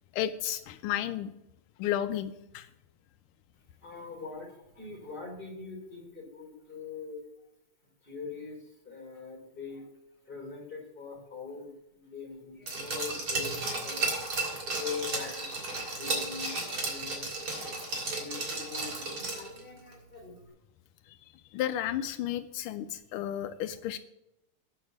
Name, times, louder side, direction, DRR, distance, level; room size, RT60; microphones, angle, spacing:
voice 1, 0.1-1.3 1.8-2.7 21.1-21.2 21.5-24.0, left 11 dB, 85° left, 10 dB, 1.5 m, -32 dB
voice 2, 3.8-7.2 8.0-9.9 10.2-14.1 14.7-15.6 15.9-20.4, left 5 dB, 25° left, -1 dB, 4.3 m, -43 dB
Glass, 12.7-19.6 19.9-20.0, right 3 dB, 70° right, 3.9 m, -34 dB
9.3 x 6.5 x 8.0 m, 0.86 s
omnidirectional pair, 2.3 m